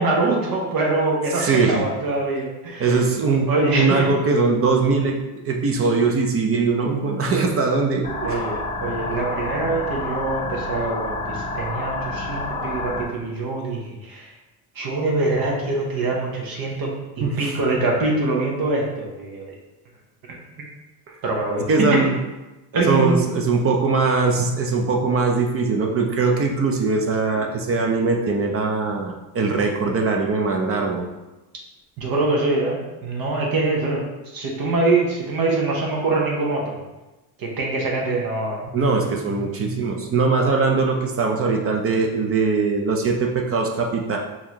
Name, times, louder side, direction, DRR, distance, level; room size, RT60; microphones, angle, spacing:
voice 1, 0.0-2.9 3.5-4.1 8.2-14.3 14.8-16.9 17.4-19.5 20.3-20.6 21.2-22.0 22.7-23.5 32.0-34.0 34.3-36.6 37.4-38.6, right 2 dB, 50° right, -2 dB, 1.0 m, -24 dB
voice 2, 1.3-1.8 2.8-5.2 5.5-8.4 17.2-17.6 21.1-21.2 21.7-22.2 22.9-31.1 38.7-44.2, right 4 dB, 30° right, 2 dB, 0.6 m, -21 dB
sound 1, 8.0-13.0, left 2 dB, 15° left, 0.6 m, -29 dB
4.6 x 2.9 x 2.9 m, 1.1 s
cardioid pair, 115°, 45 cm